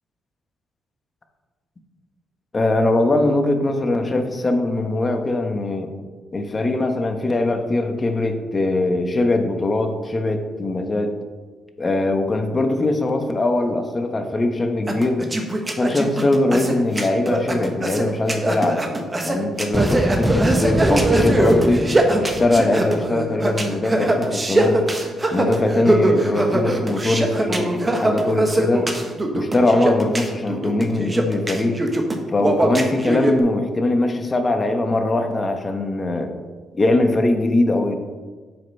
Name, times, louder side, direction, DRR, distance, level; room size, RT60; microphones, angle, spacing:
voice 1, 2.5-5.9 6.3-11.1 11.8-15.2 15.7-18.8 19.2-21.8 22.2-24.8 25.3-28.9 29.3-31.8 32.3-36.3 36.8-38.0, left 2 dB, 30° left, 6 dB, 1.0 m, -21 dB
sound 1, 14.9-33.3, right 1 dB, 20° right, 1.2 m, -22 dB
sound 2, 19.7-23.2, right 1 dB, 5° right, 0.4 m, -23 dB
7.5 x 5.5 x 5.3 m, 1.4 s
cardioid pair, 90°, 0 cm